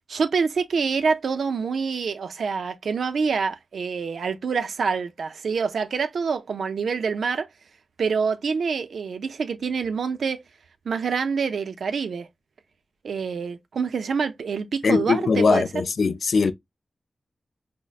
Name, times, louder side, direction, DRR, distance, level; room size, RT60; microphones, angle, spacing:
voice 1, 0.1-7.5 8.0-10.4 10.9-12.3 13.0-15.6, right 5 dB, 90° right, 0.4 m, -26 dB
voice 2, 14.8-16.5, left 4 dB, 65° left, 0.4 m, -21 dB
5.1 x 2.0 x 2.4 m
wide cardioid pair, 160°, 0 cm